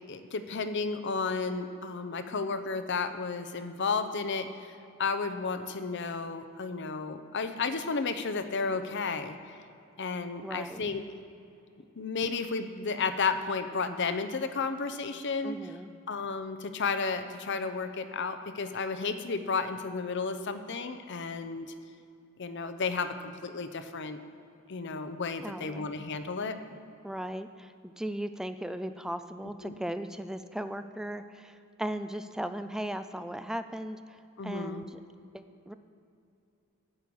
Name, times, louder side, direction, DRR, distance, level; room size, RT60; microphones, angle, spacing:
voice 1, 0.1-4.7 5.0-9.4 10.0-11.0 12.0-15.6 16.1-21.7 22.4-24.2 24.7-26.6 29.6-29.8 34.4-34.8, left 4 dB, 55° left, 10 dB, 0.7 m, -32 dB
voice 2, 10.4-10.9 15.4-15.9 25.4-25.8 27.0-35.0 35.3-35.7, right 1 dB, 5° right, 10 dB, 0.3 m, -37 dB
10.5 x 5.6 x 8.5 m, 2.7 s
head